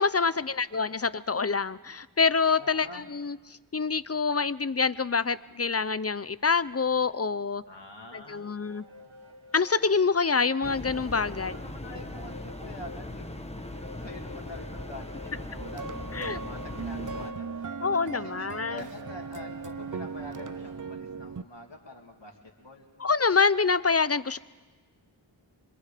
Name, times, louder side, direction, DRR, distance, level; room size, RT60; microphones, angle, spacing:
voice 1, 0.0-7.6 8.1-8.8 9.5-11.5 16.1-16.4 17.8-18.8 23.0-24.4, left 5 dB, 30° left, 16 dB, 0.6 m, -26 dB
voice 2, 2.6-3.1 7.7-8.5 11.3-22.9, left 2 dB, 65° left, 0 dB, 2.9 m, -46 dB
sound 1, 8.2-20.9, left 1 dB, 90° right, 1.7 m, -48 dB
sound 2, 10.6-17.3, left 1 dB, 15° left, 1.2 m, -40 dB
sound 3, 15.6-21.4, right 5 dB, 40° right, 0.7 m, -38 dB
26.0 x 25.0 x 5.1 m, 1.3 s
wide cardioid pair, 50°, 47 cm